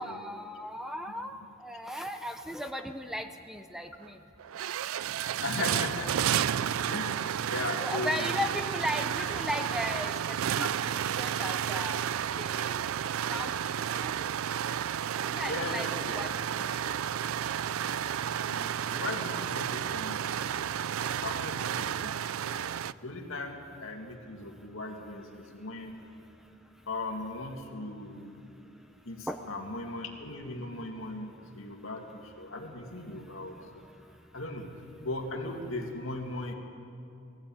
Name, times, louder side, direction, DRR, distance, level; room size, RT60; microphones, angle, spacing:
voice 1, 0.0-4.2 7.8-12.0 12.4-12.8 13.3-14.1 15.2-17.0 29.3-29.4, equal, ahead, 6 dB, 0.6 m, -37 dB
sound 1, 4.0-4.1 4.4-22.9, right 9 dB, 85° right, 0.4 m, -32 dB
voice 2, 5.4-6.4 6.9-8.3 10.6-10.7 15.4-16.2 18.4-22.7 23.0-26.1 26.9-28.4 29.1-33.6 34.3-34.7 35.0-36.5, left 2 dB, 75° left, 2 dB, 2.4 m, -38 dB
19.5 x 16.0 x 8.9 m, 2.6 s
head